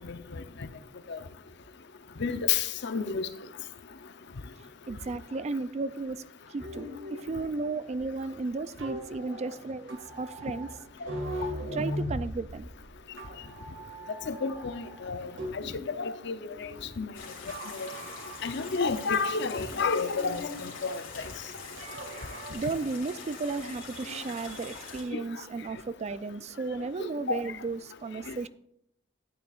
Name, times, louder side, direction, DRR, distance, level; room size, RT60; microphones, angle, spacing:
voice 1, 2.2-3.3 11.7-11.8 14.3-15.6 16.0-16.7 17.0-17.1 17.7-17.9 18.4-21.0 25.1-25.2 27.0-27.4 28.3-28.4, left 5 dB, 60° left, 0.7 m, -30 dB
voice 2, 4.9-6.2 6.5-10.7 11.7-12.7 18.4-18.6 22.5-28.5, right 3 dB, 35° right, 0.4 m, -34 dB
sound 1, 6.6-16.0 16.3-17.1 17.5-18.7 19.0-20.6 21.8-22.5, equal, 80° right, 2.0 m, -40 dB
sound 2, 17.1-25.0, left 4 dB, 85° left, 2.9 m, -44 dB
12.0 x 9.5 x 2.4 m
head